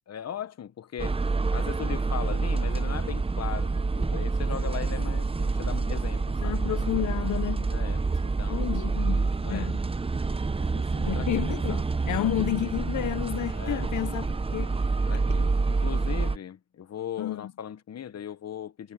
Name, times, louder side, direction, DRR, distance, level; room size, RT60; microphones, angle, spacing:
voice 1, 0.1-1.2 1.5-6.6 7.7-8.7 9.4-9.7 10.6-11.3 11.7-11.8 12.1-12.3 13.6-14.3 15.1-18.9, left 9 dB, 60° left, 1.0 m, -38 dB
sound 1, 1.0-16.4, right 3 dB, 20° right, 0.7 m, -27 dB
voice 2, 6.4-7.7 8.5-9.8 11.1-14.8 17.2-17.5, left 13 dB, 90° left, 0.7 m, -31 dB
cardioid pair, 85°, 29 cm